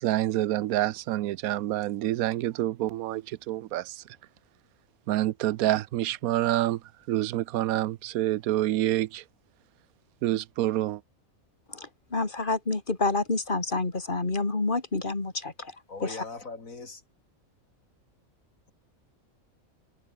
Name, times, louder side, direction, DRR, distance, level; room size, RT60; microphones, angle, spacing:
voice 1, 0.0-4.0 5.1-6.8 7.1-9.2 10.2-11.0, right 14 dB, 90° right, 1.1 m, -27 dB
voice 2, 11.7-15.7 16.0-16.2, left 3 dB, 35° left, 2.7 m, -28 dB
voice 3, 15.9-17.0, left 3 dB, 70° left, 3.5 m, -40 dB
omnidirectional pair, 1.5 m